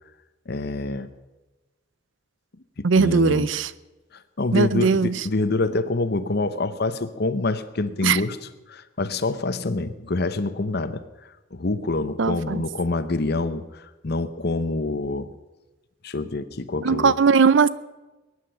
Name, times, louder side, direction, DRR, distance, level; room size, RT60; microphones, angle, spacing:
voice 1, 0.5-1.1 2.8-3.5 4.1-8.4 8.7-11.0 11.5-15.3 16.0-17.1, left 2 dB, 55° left, 12 dB, 0.9 m, -26 dB
voice 2, 2.8-3.7 4.5-5.2 8.0-8.2 12.2-12.6 16.8-17.7, right 5 dB, 70° right, 18 dB, 0.5 m, -19 dB
22.0 x 9.9 x 5.7 m, 1.1 s
head